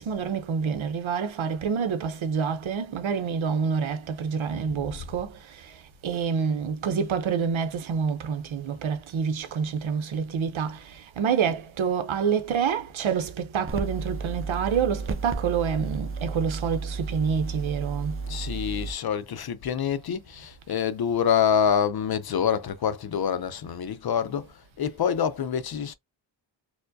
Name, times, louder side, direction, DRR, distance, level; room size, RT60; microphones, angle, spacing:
voice 1, 0.0-18.2, right 6 dB, 90° right, 0.7 m, -27 dB
sound 1, 13.7-18.9, right 4 dB, 30° right, 0.6 m, -33 dB
voice 2, 18.3-25.9, left 8 dB, 55° left, 0.5 m, -26 dB
4.5 x 2.1 x 2.6 m
wide cardioid pair, 95°, 46 cm